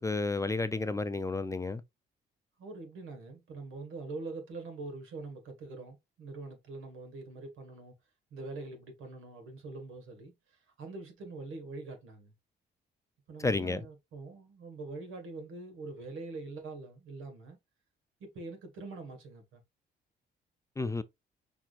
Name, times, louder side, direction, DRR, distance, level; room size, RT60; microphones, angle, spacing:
voice 1, 0.0-1.8 13.4-13.8 20.8-21.0, left 3 dB, 15° left, 0.4 m, -31 dB
voice 2, 2.6-7.9 8.3-12.3 13.3-17.6 18.2-19.6, right 3 dB, 85° right, 1.7 m, -44 dB
6.0 x 3.5 x 2.5 m
cardioid pair, 90°, 20 cm